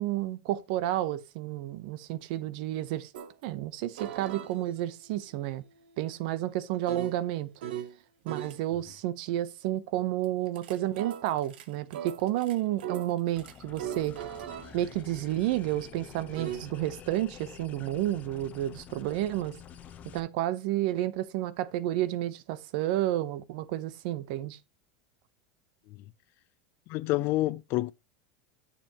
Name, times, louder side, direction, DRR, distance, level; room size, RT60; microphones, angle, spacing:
voice 1, 0.0-3.1 3.4-5.6 6.0-7.5 8.2-14.2 14.7-19.6 20.1-24.6, right 14 dB, 65° right, 0.8 m, -31 dB
sound 1, 3.1-3.3 4.0-8.0 8.3-8.6 10.2-16.6, right 10 dB, 85° right, 1.1 m, -41 dB
sound 2, 13.4-20.2, left 8 dB, 30° left, 0.9 m, -48 dB
voice 2, 26.9-27.9, left 17 dB, 45° left, 0.4 m, -28 dB
10.0 x 6.9 x 2.9 m
supercardioid pair, 145°, 5 cm